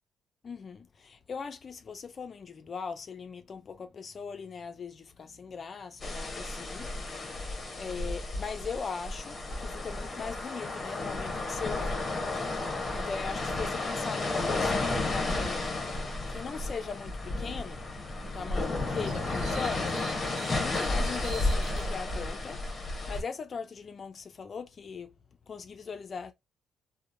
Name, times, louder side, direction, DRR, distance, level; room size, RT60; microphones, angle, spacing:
voice 1, 0.4-7.4 7.8-12.1 12.9-15.9 16.3-17.8 18.2-25.1 25.5-26.3, left 5 dB, 45° left, 0.3 m, -40 dB
sound 1, 6.0-23.2, left 2 dB, 30° left, 0.8 m, -32 dB
sound 2, 19.0-21.9, right 4 dB, 80° right, 0.7 m, -47 dB
2.9 x 2.0 x 2.5 m
cardioid pair, 90°, 0 cm